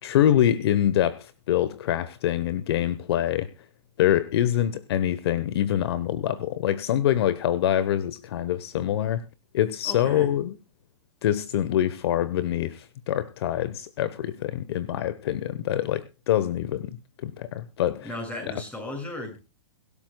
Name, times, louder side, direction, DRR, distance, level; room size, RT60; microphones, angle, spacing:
voice 1, 0.0-3.5 4.0-9.2 9.5-10.5 11.2-18.1, left 11 dB, 55° left, 1.1 m, -25 dB
voice 2, 9.8-10.3 18.0-19.4, left 1 dB, 10° left, 6.7 m, -35 dB
23.5 x 12.5 x 2.3 m
hypercardioid pair, 140°, 16 cm